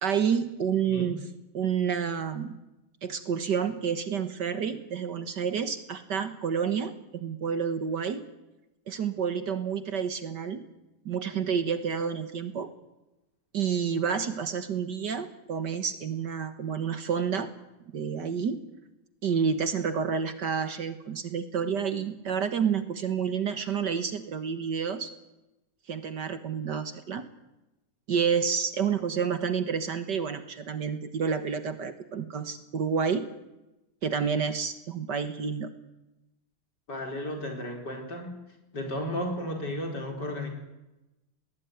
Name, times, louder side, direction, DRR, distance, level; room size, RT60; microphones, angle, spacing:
voice 1, 0.0-1.2 1.5-2.6 3.0-8.2 8.9-10.6 11.1-12.7 13.5-17.5 17.9-18.6 19.2-25.1 25.9-27.2 28.1-33.3 34.0-35.7, right 6 dB, 55° right, 10 dB, 1.9 m, -29 dB
voice 2, 36.9-38.4 38.7-40.5, left 1 dB, 50° left, 3 dB, 5.2 m, -34 dB
20.5 x 19.5 x 9.5 m, 0.98 s
omnidirectional pair, 2.3 m